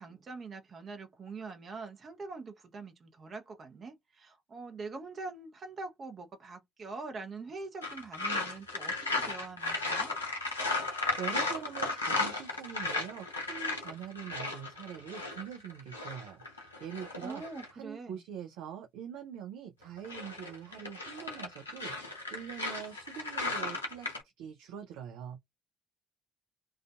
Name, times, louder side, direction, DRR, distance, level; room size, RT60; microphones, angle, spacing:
voice 1, 0.0-10.1 17.2-18.2, right 3 dB, 40° right, 0.7 m, -44 dB
sound 1, 7.8-17.7 19.8-24.2, left 3 dB, 85° left, 0.7 m, -35 dB
voice 2, 10.8-17.4 17.7-25.4, right 9 dB, 65° right, 0.4 m, -44 dB
2.4 x 2.3 x 2.3 m
figure-of-eight pair, 50°, 0 cm